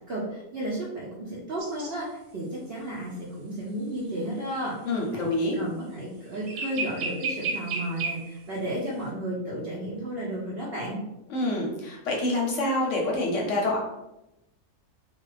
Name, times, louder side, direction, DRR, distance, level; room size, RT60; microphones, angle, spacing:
voice 1, 0.1-4.7 5.1-11.0, right 1 dB, 60° right, -5 dB, 0.6 m, -33 dB
sound 1, 1.6-1.9 6.5-8.3, right 4 dB, 80° right, 1.1 m, -32 dB
voice 2, 4.9-5.6 11.3-13.8, left 2 dB, 65° left, -1 dB, 0.9 m, -26 dB
2.5 x 2.3 x 3.1 m, 0.91 s
omnidirectional pair, 1.5 m